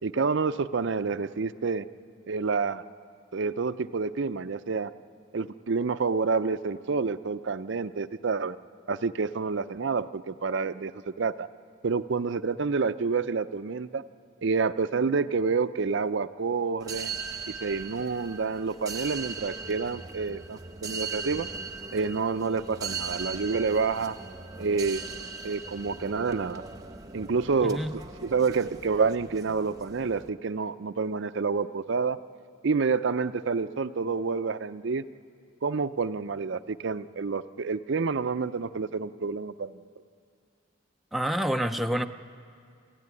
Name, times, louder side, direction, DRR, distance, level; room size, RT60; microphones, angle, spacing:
voice 1, 0.0-1.9 2.3-2.8 3.3-4.9 5.3-8.6 8.9-10.9 11.2-11.5 11.8-14.0 14.4-17.1 17.6-21.5 21.9-24.1 24.6-25.1 25.4-26.6 27.1-27.8 28.2-32.2 32.6-35.0 35.6-39.8, right 4 dB, 60° right, 12 dB, 0.5 m, -28 dB
sound 1, 16.8-30.3, right 4 dB, 20° right, 0.9 m, -39 dB
voice 2, 27.6-28.0 41.1-42.1, equal, ahead, 5 dB, 0.5 m, -28 dB
27.5 x 14.5 x 9.7 m, 2.3 s
head